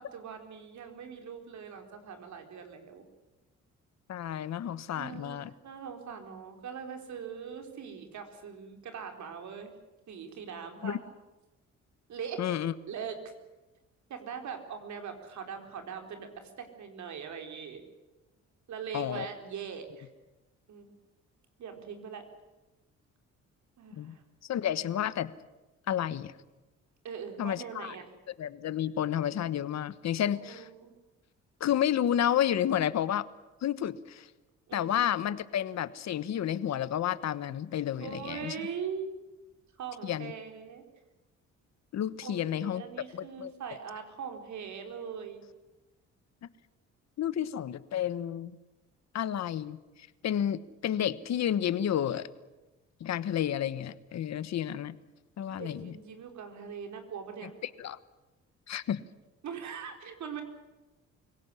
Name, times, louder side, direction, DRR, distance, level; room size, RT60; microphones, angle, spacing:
voice 1, 0.0-3.1 4.9-9.7 10.1-11.0 12.1-12.4 12.9-13.2 14.1-17.8 18.7-20.1 20.7-20.9 21.6-22.2 23.8-24.2 27.0-28.1 30.4-30.9 34.7-35.0 38.0-39.2 39.8-40.8 42.2-45.4 55.5-57.5 59.4-60.4, right 7 dB, 70° right, 5 dB, 4.0 m, -41 dB
voice 2, 4.1-5.5 10.8-11.0 12.4-12.7 18.9-19.3 24.0-24.1 24.5-25.3 25.9-26.3 27.4-28.0 28.4-30.7 31.6-33.3 33.6-34.3 34.7-38.5 40.0-40.3 41.9-42.8 43.1-43.5 46.4-46.5 47.2-48.5 49.1-49.8 50.2-52.3 53.0-55.0 55.4-56.0 57.4-58.0 58.7-59.0, left 10 dB, 60° left, 15 dB, 1.2 m, -31 dB
24.5 x 17.5 x 9.8 m, 1.1 s
cardioid pair, 90°, 30 cm